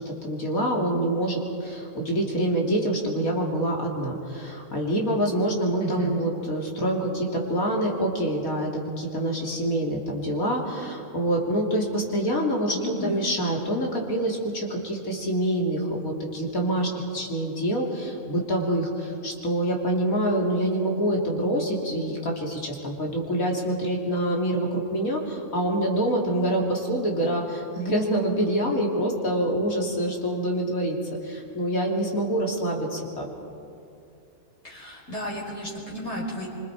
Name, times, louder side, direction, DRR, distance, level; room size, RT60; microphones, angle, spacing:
voice 1, 0.0-31.0 31.2-33.3, right 1 dB, 75° left, -1 dB, 3.5 m, -26 dB
voice 2, 5.8-6.1 12.7-13.2 34.6-36.5, equal, 60° left, -5 dB, 5.4 m, -33 dB
26.0 x 25.5 x 4.9 m, 2.5 s
omnidirectional pair, 1.5 m